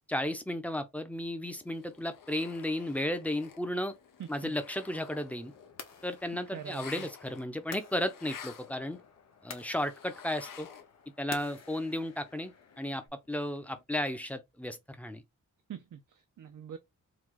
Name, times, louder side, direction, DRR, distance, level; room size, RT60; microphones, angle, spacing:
voice 1, 0.1-3.9 4.3-5.5 6.0-9.0 9.4-10.7 11.2-15.2, left 1 dB, 5° left, 0.6 m, -34 dB
sound 1, 1.5-11.1 11.4-13.8, left 7 dB, 75° left, 0.9 m, -52 dB
voice 2, 4.2-4.5 6.5-7.1 15.7-16.8, right 9 dB, 70° right, 0.6 m, -44 dB
sound 2, 4.8-13.1, left 5 dB, 55° left, 1.0 m, -51 dB
4.8 x 2.3 x 3.9 m
wide cardioid pair, 155°, 32 cm